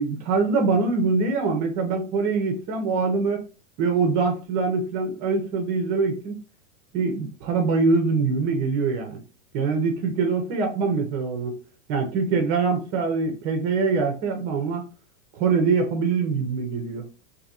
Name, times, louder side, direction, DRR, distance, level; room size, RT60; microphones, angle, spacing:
voice 1, 0.0-3.4 3.8-6.4 6.9-9.2 9.5-11.6 11.9-14.8 15.4-17.1, right 4 dB, 25° right, 4 dB, 0.4 m, -24 dB
2.6 x 2.5 x 4.0 m, 0.34 s
supercardioid pair, 160°, 39 cm